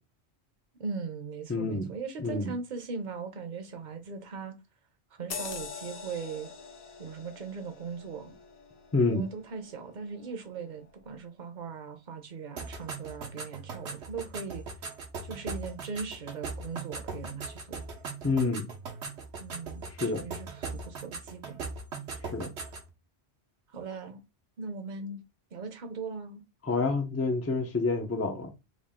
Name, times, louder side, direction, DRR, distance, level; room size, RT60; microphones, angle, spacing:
voice 1, 0.8-4.6 5.2-6.5 7.0-8.3 9.1-14.6 15.2-17.8 19.4-21.6 23.7-24.2 24.6-25.2 25.5-26.4, right 5 dB, 50° right, 0.8 m, -39 dB
voice 2, 1.5-1.9 2.2-2.5 8.9-9.2 18.2-18.7 20.0-20.2 22.2-22.5 26.6-28.5, left 3 dB, 20° left, 0.4 m, -28 dB
sound 1, 5.3-10.3 10.7-10.9, left 5 dB, 60° left, 0.9 m, -44 dB
sound 2, 12.6-22.9, right 4 dB, 85° right, 1.2 m, -40 dB
3.6 x 2.4 x 3.6 m
omnidirectional pair, 1.1 m